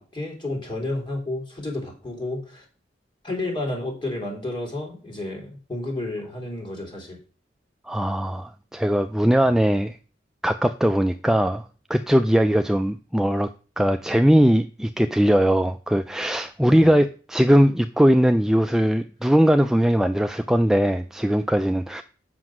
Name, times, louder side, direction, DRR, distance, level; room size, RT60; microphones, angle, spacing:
voice 1, 0.0-2.6 3.2-7.2 16.6-16.9, left 2 dB, 25° left, 3.3 m, -31 dB
voice 2, 7.9-10.0 10.4-13.5 13.8-22.0, equal, 5° right, 0.3 m, -20 dB
7.7 x 6.1 x 6.1 m
head